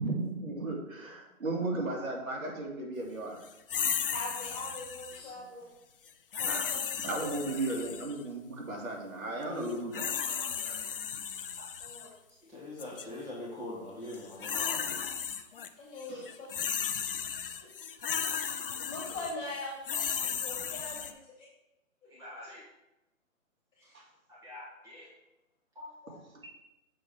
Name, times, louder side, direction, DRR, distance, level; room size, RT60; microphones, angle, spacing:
voice 1, 0.0-3.4 6.5-6.7 7.0-10.1 16.1-16.3 23.9-24.0 26.4-26.5, right 2 dB, 80° right, -1 dB, 2.6 m, -35 dB
sound 1, 3.7-5.3 6.3-8.2 9.6-12.1 12.8-13.0 14.1-15.7 16.0-21.1, left 7 dB, 45° left, 0.5 m, -35 dB
voice 2, 4.1-5.6 6.4-7.8 11.8-12.1 15.8-16.5 18.8-21.5 23.8-23.9, left 2 dB, 10° left, -8 dB, 2.6 m, -42 dB
voice 3, 5.1-5.4 9.5-9.7 10.3-10.8 11.6-11.7 12.4-15.1 17.2-17.7 21.0-21.1 22.1-22.6 23.9-24.0 24.3-25.1 25.8-26.2, left 1 dB, 5° right, -7 dB, 2.1 m, -45 dB
7.5 x 4.4 x 5.2 m, 0.94 s
hypercardioid pair, 150°, 41 cm